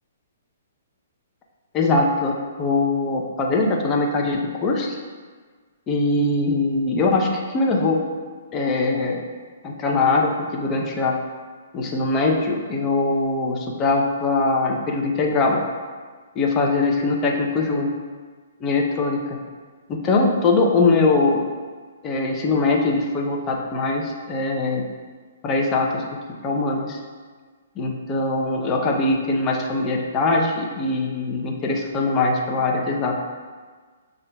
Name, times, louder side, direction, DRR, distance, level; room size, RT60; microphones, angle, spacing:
voice 1, 1.7-5.0 5.9-8.0 8.5-9.2 9.6-11.2 11.7-15.6 16.4-17.9 18.6-19.4 19.9-21.4 22.0-24.8 25.4-26.0 26.4-27.0 27.8-33.2, left 3 dB, 25° left, 0 dB, 0.5 m, -22 dB
7.0 x 2.5 x 2.2 m, 1.5 s
hypercardioid pair, 135°, 0 cm